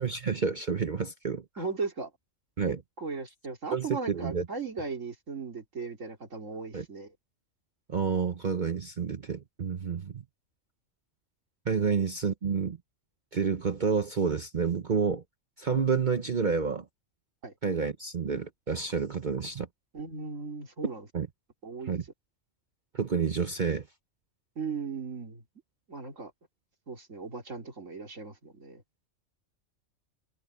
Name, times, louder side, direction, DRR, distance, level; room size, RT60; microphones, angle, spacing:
voice 1, 0.0-1.6 2.6-2.8 3.7-4.4 6.7-6.9 7.9-10.2 11.7-12.8 13.3-15.2 15.6-16.8 17.6-19.7 21.1-21.3 21.9-22.0 22.9-23.8, right 5 dB, 45° right, 0.9 m, -29 dB
voice 2, 1.6-2.1 2.7-7.1 17.4-17.5 19.9-21.1 21.6-21.9 24.6-25.4 25.9-26.3 26.9-28.8, right 4 dB, 85° right, 3.4 m, -37 dB
omnidirectional pair, 1.3 m